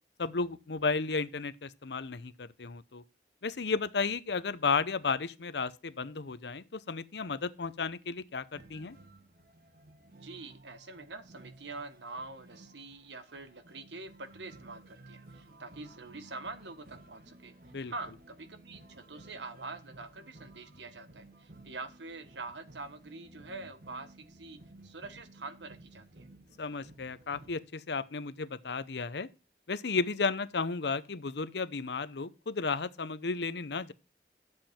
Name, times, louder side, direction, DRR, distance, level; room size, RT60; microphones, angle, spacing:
voice 1, 0.2-3.0 3.4-9.0 17.7-17.9 26.6-29.3 29.7-33.9, left 4 dB, 75° left, 0.7 m, -33 dB
sound 1, 8.5-27.6, right 2 dB, 55° right, 1.7 m, -55 dB
voice 2, 10.1-17.5 17.9-26.3, right 3 dB, 90° right, 1.4 m, -45 dB
11.0 x 7.6 x 4.4 m
head